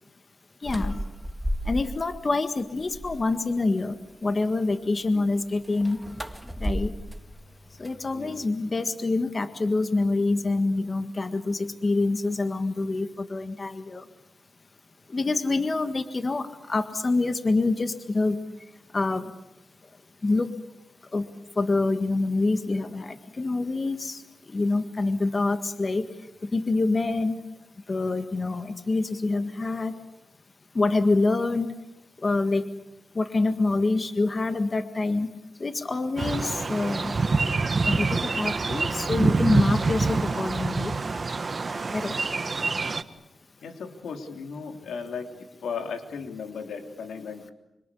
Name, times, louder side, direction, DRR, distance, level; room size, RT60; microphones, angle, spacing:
voice 1, 0.6-0.9 1.7-4.0 4.2-6.0 6.6-6.9 7.8-14.0 15.1-18.4 18.9-19.2 20.2-20.5 21.1-21.2 21.6-24.2 24.5-26.0 26.5-27.4 27.9-29.9 30.7-31.7 32.2-32.6 33.1-35.3 35.6-37.1 37.8-40.9 41.9-42.1, left 3 dB, 35° left, 9 dB, 1.7 m, -26 dB
sound 1, 0.6-2.2 2.6-3.4 5.6-8.5, equal, 5° right, 1.9 m, -34 dB
sound 2, 36.2-43.0, right 3 dB, 40° right, 1.5 m, -26 dB
voice 2, 43.6-47.5, left 5 dB, 85° left, 6 dB, 3.3 m, -36 dB
26.5 x 25.5 x 8.5 m, 0.94 s
cardioid pair, 90°, 0 cm